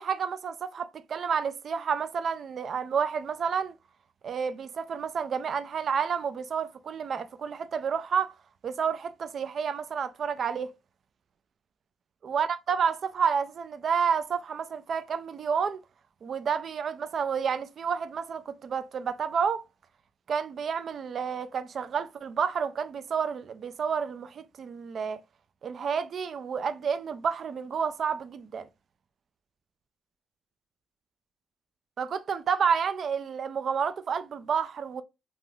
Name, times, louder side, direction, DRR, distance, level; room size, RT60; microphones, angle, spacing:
voice 1, 0.0-3.7 4.2-8.3 8.6-10.7 12.2-15.8 16.2-19.6 20.3-25.2 25.6-28.7 32.0-35.0, right 6 dB, 55° right, 0.3 m, -30 dB
2.4 x 2.3 x 3.2 m
cardioid pair, 90°, 0 cm